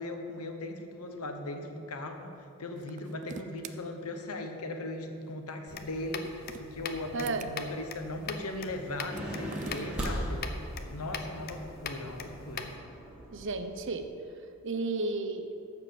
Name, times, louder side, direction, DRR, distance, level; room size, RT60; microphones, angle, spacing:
voice 1, 0.0-2.3 2.6-10.4 10.9-12.7, left 1 dB, 80° left, 5 dB, 1.1 m, -38 dB
sound 1, 2.8-3.8 6.0-7.5 9.0-10.1, right 6 dB, 35° right, 0.3 m, -45 dB
sound 2, 5.7-12.8, left 5 dB, 45° left, 0.6 m, -42 dB
voice 2, 7.1-7.5 13.3-14.1 14.6-15.6, right 3 dB, 55° right, 8 dB, 0.7 m, -33 dB
sound 3, 9.1-13.9, equal, 5° right, 1.6 m, -39 dB
13.0 x 4.6 x 7.6 m, 2.5 s
head